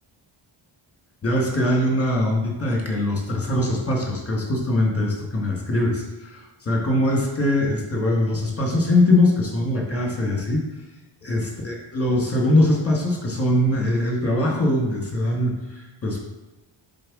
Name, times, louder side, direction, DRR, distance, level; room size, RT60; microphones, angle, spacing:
voice 1, 1.2-10.6 11.2-16.2, left 1 dB, 30° left, 0 dB, 1.2 m, -22 dB
7.6 x 4.1 x 3.5 m, 1.1 s
wide cardioid pair, 180°, 50 cm